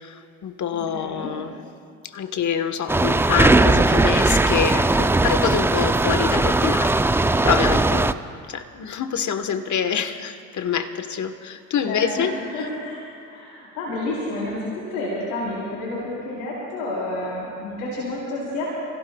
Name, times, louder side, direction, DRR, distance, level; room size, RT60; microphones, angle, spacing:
voice 1, 0.0-1.6 2.0-8.2 8.5-12.3, left 7 dB, 45° left, 9 dB, 1.3 m, -26 dB
voice 2, 0.7-1.3 11.8-13.0 13.3-18.6, left 2 dB, 80° left, -6 dB, 4.0 m, -30 dB
sound 1, 2.9-8.1, right 2 dB, 5° right, 0.4 m, -19 dB
29.5 x 16.5 x 2.3 m, 2.4 s
hypercardioid pair, 65°, 41 cm